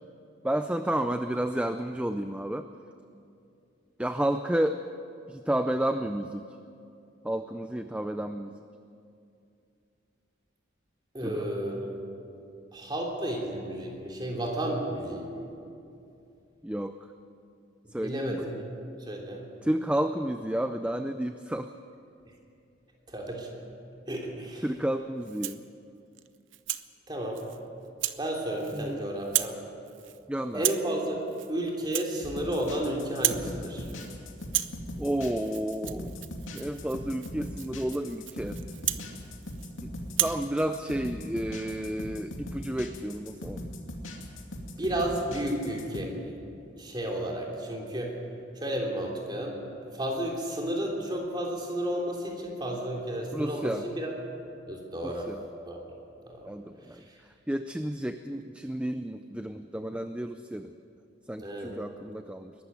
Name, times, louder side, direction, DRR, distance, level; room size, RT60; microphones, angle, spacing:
voice 1, 0.4-2.7 4.0-4.8 5.3-6.5 7.2-8.6 11.2-11.5 16.6-17.0 17.9-18.4 19.6-21.7 24.6-25.6 28.7-29.1 30.3-30.6 35.0-36.2 36.5-38.6 39.8-39.9 40.2-43.6 53.3-53.9 55.0-55.4 56.4-57.0 57.5-60.7 61.3-62.5, right 1 dB, 5° right, 8 dB, 0.4 m, -31 dB
voice 2, 11.1-12.0 12.7-15.4 18.0-18.7 19.0-19.5 23.1-23.5 24.1-24.6 27.1-27.4 28.2-29.5 30.5-31.2 31.5-33.9 44.7-46.4 46.8-48.1 48.6-49.6 49.8-54.1 54.7-55.3 55.6-55.8 56.3-56.4 61.4-61.7, right 1 dB, 20° right, -1 dB, 3.3 m, -32 dB
Rattle (instrument), 25.2-25.7 26.2-26.9 27.3-27.6 28.0-28.2 28.5-28.9 29.2-29.6 29.9-30.2 30.5-30.9 31.3-31.5 31.8-32.8 33.1-33.5 33.8-34.1 34.4-39.7 40.1-40.4, right 14 dB, 75° right, 0.7 m, -33 dB
sound 1, 32.2-46.0, left 1 dB, 80° left, 2.5 m, -39 dB
21.5 x 13.0 x 9.3 m, 2.5 s
head